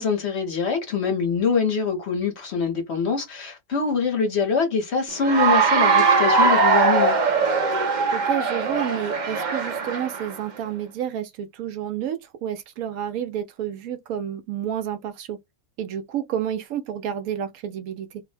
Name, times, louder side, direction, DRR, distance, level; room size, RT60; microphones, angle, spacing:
voice 1, 0.0-7.2, left 5 dB, 55° left, 0.9 m, -24 dB
Cheering / Applause, 5.2-10.4, right 4 dB, 55° right, 0.5 m, -20 dB
voice 2, 8.1-15.4 15.8-18.2, right 9 dB, 75° right, 1.0 m, -30 dB
2.6 x 2.0 x 3.1 m
omnidirectional pair, 1.5 m